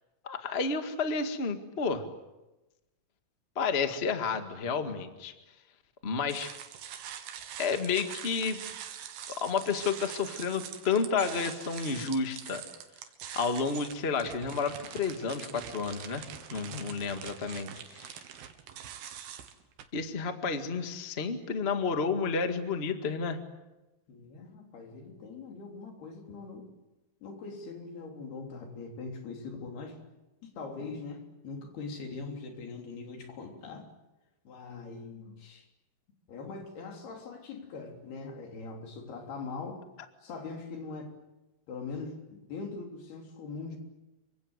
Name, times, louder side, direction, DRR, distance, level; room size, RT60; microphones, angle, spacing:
voice 1, 0.2-2.0 3.5-5.3 6.0-6.5 7.6-8.6 9.3-12.6 13.3-18.2 19.9-23.4, left 5 dB, 30° left, 7 dB, 1.1 m, -31 dB
sound 1, 6.3-19.8, right 9 dB, 80° right, 3.4 m, -44 dB
voice 2, 24.1-26.7 27.2-30.0 30.4-33.9 34.5-35.7 36.3-39.8 40.2-41.1 41.7-43.8, left 4 dB, 85° left, 2 dB, 5.4 m, -42 dB
27.5 x 24.5 x 8.1 m, 1.0 s
omnidirectional pair, 4.4 m